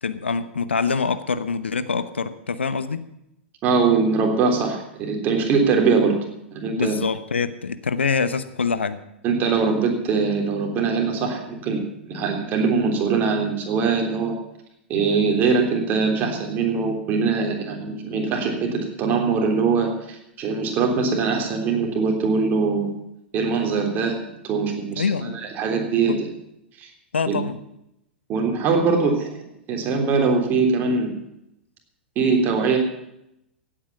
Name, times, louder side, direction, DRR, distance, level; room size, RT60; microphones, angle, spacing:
voice 1, 0.0-3.0 6.7-9.0 24.9-25.4 26.1-26.2 27.1-27.6, left 5 dB, 75° left, 13 dB, 0.9 m, -25 dB
voice 2, 3.6-6.2 6.5-6.9 9.2-14.3 14.9-18.7 19.0-22.9 23.3-24.2 24.4-26.3 26.8-26.9 27.3-27.4 28.3-29.3 29.7-31.1 32.1-32.8, right 4 dB, 30° right, 2 dB, 3.4 m, -22 dB
16.5 x 8.9 x 7.1 m, 0.81 s
figure-of-eight pair, 100°, 6 cm